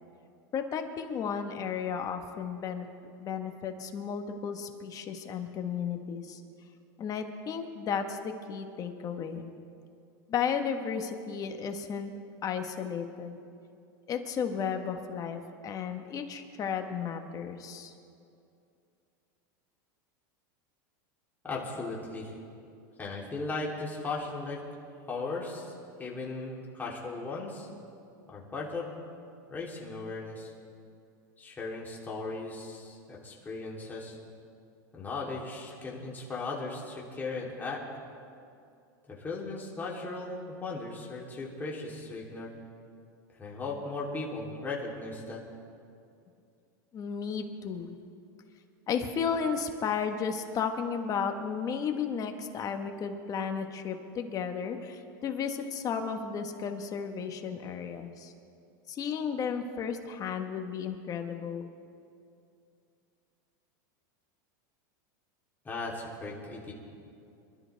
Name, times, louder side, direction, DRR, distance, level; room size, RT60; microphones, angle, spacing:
voice 1, 0.5-2.9 3.2-6.4 7.0-9.5 10.3-12.1 12.4-13.4 14.1-17.9 46.9-48.0 48.9-58.3 58.9-61.7, left 6 dB, 30° left, 5 dB, 1.4 m, -34 dB
voice 2, 21.4-22.3 23.0-24.6 25.1-25.7 26.0-27.7 28.3-28.9 29.5-30.5 31.4-34.1 34.9-37.8 39.1-42.5 43.4-45.4 65.6-66.7, left 3 dB, 15° left, -4 dB, 3.4 m, -37 dB
26.0 x 13.0 x 3.5 m, 2.5 s
supercardioid pair, 125°, 11 cm